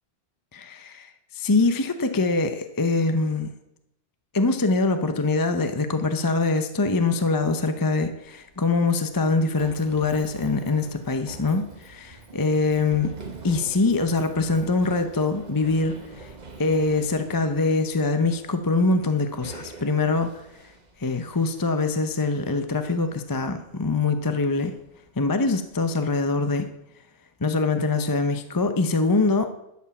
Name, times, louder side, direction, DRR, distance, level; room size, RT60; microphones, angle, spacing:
voice 1, 0.5-3.5 4.3-13.1 13.4-16.3 16.6-20.6 21.0-24.8 25.2-26.7 27.4-29.5, left 3 dB, 20° left, 7 dB, 0.7 m, -24 dB
Run, 8.1-26.7, right 3 dB, 40° right, 1.3 m, -46 dB
11.5 x 7.2 x 7.1 m, 0.84 s
omnidirectional pair, 1.1 m